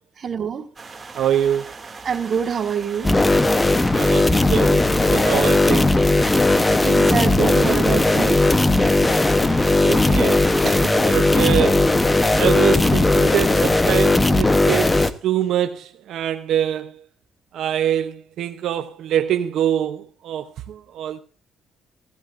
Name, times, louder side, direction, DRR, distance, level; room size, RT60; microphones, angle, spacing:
voice 1, 0.2-0.7 2.0-3.2 6.7-8.4 10.6-11.3, right 7 dB, 50° right, 1.6 m, -25 dB
sound 1, 0.8-11.7, right 4 dB, 30° right, 2.3 m, -39 dB
voice 2, 1.1-1.7 3.9-6.0 9.3-10.5 11.0-11.9 12.3-17.0 17.5-21.2, right 10 dB, 75° right, 0.7 m, -24 dB
sound 2, 3.0-15.1, left 2 dB, 15° left, 0.9 m, -17 dB
16.0 x 15.0 x 2.5 m
cardioid pair, 90°, 0 cm